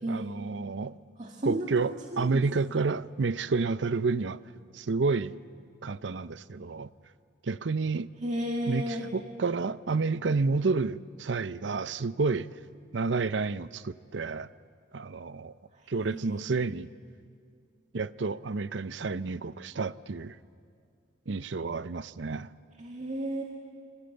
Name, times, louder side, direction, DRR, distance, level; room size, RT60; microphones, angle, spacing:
voice 1, 0.1-1.0 1.4-4.4 4.7-5.4 5.8-6.9 7.4-8.1 8.7-12.5 12.9-14.5 14.9-15.5 15.9-16.9 17.9-20.4 21.3-22.5, right 4 dB, 70° right, 0.6 m, -30 dB
voice 2, 1.2-2.4 8.2-9.1 15.7-16.7 22.8-23.4, equal, 40° right, 2.0 m, -34 dB
26.5 x 25.5 x 7.9 m
head